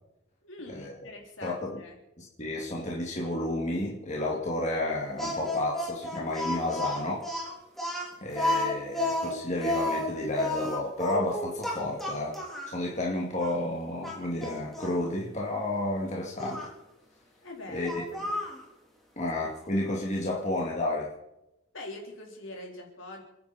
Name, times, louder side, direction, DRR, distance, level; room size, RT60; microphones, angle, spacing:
voice 1, 0.4-2.0 17.4-17.9 18.2-18.4 21.7-23.2, left 2 dB, 65° left, 1 dB, 3.8 m, -43 dB
voice 2, 1.4-1.8 2.2-7.3 8.2-12.4 12.7-16.7 17.7-18.3 19.2-21.1, left 1 dB, 35° left, -2 dB, 2.3 m, -31 dB
Speech, 5.2-12.8 13.4-13.5 14.0-15.0 16.4-16.7 17.8-18.6, left 1 dB, ahead, 3.4 m, -31 dB
28.5 x 10.5 x 4.3 m, 0.89 s
head